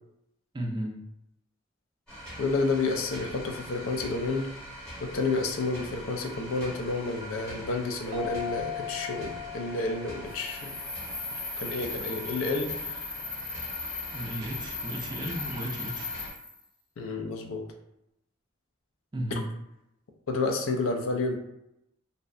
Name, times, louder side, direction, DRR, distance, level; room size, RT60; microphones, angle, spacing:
voice 1, 0.5-1.0 14.1-16.1 19.1-19.5, equal, 20° right, 0 dB, 0.3 m, -34 dB
sound 1, 2.1-16.3, equal, 5° left, 0.9 m, -43 dB
voice 2, 2.4-4.5 5.0-10.7 11.6-13.1 17.0-17.6 20.3-21.4, left 3 dB, 75° left, 3 dB, 0.4 m, -30 dB
sound 2, 8.1-11.4, left 10 dB, 90° right, 0.4 m, -39 dB
sound 3, 10.3-16.6, left 3 dB, 50° left, 0.9 m, -37 dB
2.6 x 2.1 x 2.4 m, 0.83 s
head